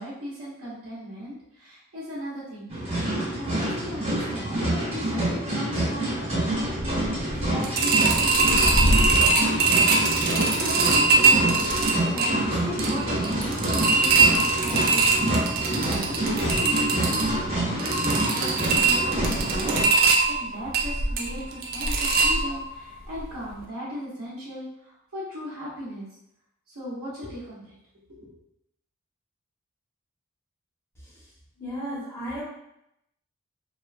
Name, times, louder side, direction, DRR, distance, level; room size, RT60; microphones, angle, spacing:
voice 1, 0.0-2.7 3.2-15.5 15.8-19.8 20.3-26.1 26.7-27.7 28.1-28.3, equal, 75° right, -9 dB, 0.8 m, -37 dB
sound 1, 2.7-19.8, right 1 dB, 30° right, 1.1 m, -27 dB
sound 2, 7.6-22.8 23.2-23.3 23.6-23.7, right 3 dB, 45° right, 0.3 m, -23 dB
voice 2, 31.6-32.4, equal, 10° left, -9 dB, 0.8 m, -33 dB
3.0 x 2.1 x 2.4 m, 0.80 s
head